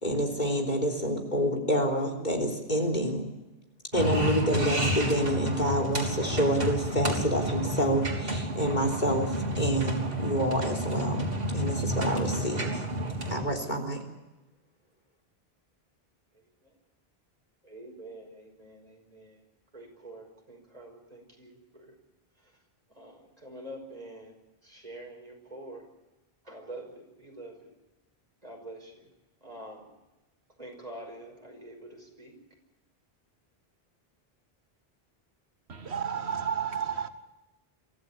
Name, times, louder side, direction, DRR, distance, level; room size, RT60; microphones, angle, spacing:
voice 1, 0.0-3.3 3.9-12.8 13.3-14.0, equal, 45° left, 4 dB, 3.7 m, -28 dB
sound 1, 3.9-13.4, right 1 dB, 65° right, 3.7 m, -30 dB
voice 2, 17.6-19.4 19.7-22.0 22.9-24.3 24.6-25.9 26.4-27.7 28.4-29.1 29.4-29.9 30.6-32.4, right 1 dB, 40° right, 1 dB, 5.6 m, -46 dB
voice 3, 35.7-37.1, right 7 dB, 90° right, 8 dB, 1.6 m, -31 dB
24.0 x 15.0 x 8.6 m, 1.0 s
omnidirectional pair, 1.0 m